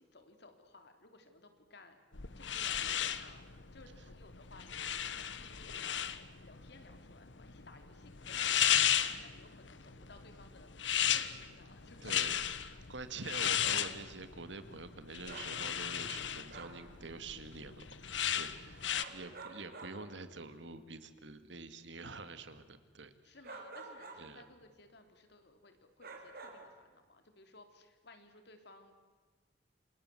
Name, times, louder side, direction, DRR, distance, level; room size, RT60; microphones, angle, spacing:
voice 1, 0.0-2.0 2.3-12.4 12.8-12.9 18.5-19.2 23.2-28.9, left 2 dB, 65° left, 7 dB, 3.3 m, -59 dB
sound 1, 2.1-19.0, left 10 dB, 85° left, 1.3 m, -35 dB
voice 2, 12.0-12.4 12.9-23.1 24.2-24.4, right 3 dB, 75° right, 11 dB, 2.1 m, -47 dB
sound 2, 13.5-13.9 15.2-15.6 16.5-16.9 18.9-20.0 23.4-24.3 26.0-26.8, right 3 dB, 55° right, 4.8 m, -49 dB
28.5 x 27.0 x 7.8 m, 1.5 s
head